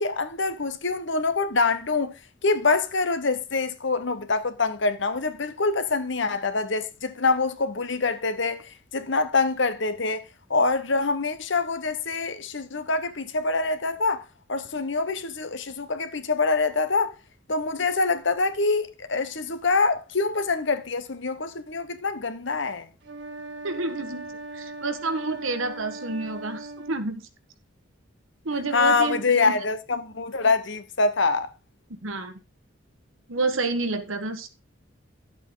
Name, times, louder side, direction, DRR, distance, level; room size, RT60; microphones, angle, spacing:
voice 1, 0.0-10.2 10.5-17.1 17.5-22.9 28.7-31.5, left 3 dB, 65° left, 1.2 m, -25 dB
sound 1, 23.0-27.0, right 2 dB, 60° right, 2.0 m, -39 dB
voice 2, 23.6-27.2 28.4-29.5 31.9-32.4 33.3-34.5, right 3 dB, 80° right, 1.5 m, -29 dB
11.5 x 7.9 x 3.9 m
head